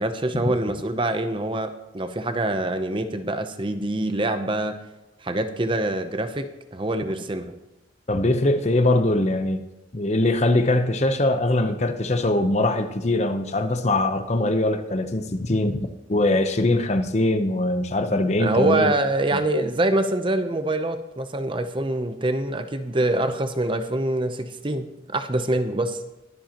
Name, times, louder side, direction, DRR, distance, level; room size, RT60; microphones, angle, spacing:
voice 1, 0.0-4.8 5.2-7.5 18.4-26.0, right 1 dB, 25° right, 9 dB, 0.7 m, -25 dB
voice 2, 8.1-9.6 9.9-18.9, left 2 dB, 35° left, 8 dB, 0.8 m, -22 dB
22.0 x 7.7 x 3.0 m, 1.0 s
head